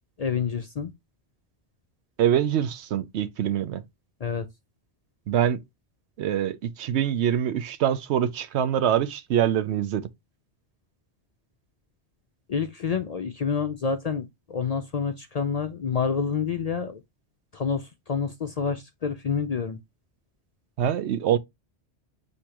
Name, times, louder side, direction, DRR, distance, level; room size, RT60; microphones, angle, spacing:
voice 1, 0.2-0.9 4.2-4.5 12.5-17.0 17.5-19.8, left 6 dB, 55° left, 0.4 m, -28 dB
voice 2, 2.2-3.8 5.3-5.6 6.2-10.1 20.8-21.4, right 10 dB, 85° right, 0.9 m, -24 dB
6.4 x 2.8 x 2.8 m
omnidirectional pair, 1.1 m